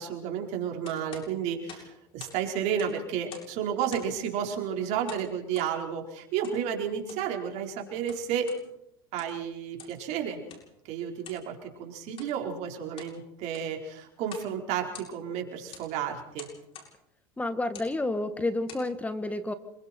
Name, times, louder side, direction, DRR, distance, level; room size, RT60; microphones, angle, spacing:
voice 1, 0.0-1.9 2.1-8.5 9.1-10.4 10.9-16.5, right 8 dB, 60° right, 3 dB, 4.5 m, -32 dB
sound 1, 0.8-2.4 2.7-3.6 3.9-4.2 5.1-5.7 6.4-6.6 7.0-7.3 7.9-8.6 9.0-9.4 9.8-10.0 10.5-10.7 11.2-11.5 12.1-12.3 12.8-13.2 13.5-13.8 14.2-14.5 14.8-15.3 15.7-15.9 16.4-16.9 17.6-17.9 18.5-18.9, left 6 dB, 45° left, 7.1 m, -47 dB
voice 2, 17.4-19.5, left 2 dB, 10° left, 11 dB, 1.7 m, -30 dB
27.0 x 23.0 x 4.6 m, 0.82 s
hypercardioid pair, 90°, 13 cm